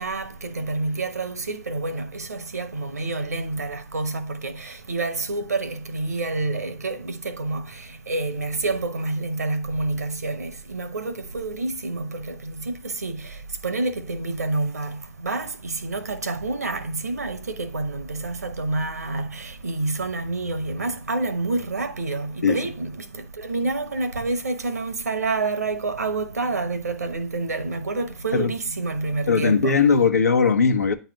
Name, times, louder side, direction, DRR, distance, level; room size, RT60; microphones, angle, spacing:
voice 1, 0.0-30.1, right 3 dB, 85° right, 1.1 m, -28 dB
voice 2, 29.3-30.9, left 5 dB, 85° left, 1.0 m, -19 dB
9.1 x 3.3 x 4.7 m
figure-of-eight pair, 110°, 8 cm